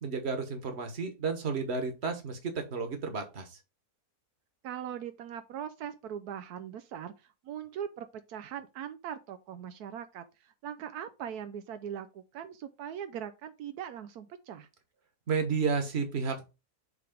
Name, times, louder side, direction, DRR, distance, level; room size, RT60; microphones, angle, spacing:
voice 1, 0.0-3.6 15.3-16.4, right 5 dB, 45° right, 1.5 m, -32 dB
voice 2, 4.6-14.7, right 9 dB, 80° right, 1.1 m, -41 dB
6.8 x 3.3 x 5.0 m
omnidirectional pair, 1.6 m